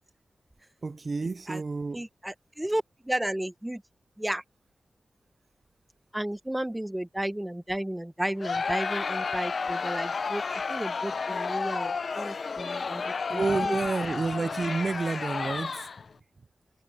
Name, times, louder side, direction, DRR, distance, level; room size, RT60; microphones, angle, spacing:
voice 1, 0.8-2.0 13.3-15.9, right 4 dB, 45° right, 0.4 m, -30 dB
voice 2, 1.9-3.8 4.2-4.4 6.1-13.8, right 1 dB, 10° right, 0.9 m, -33 dB
Crowd, 8.4-16.1, left 5 dB, 65° left, 0.5 m, -31 dB
wide cardioid pair, 110°, 0 cm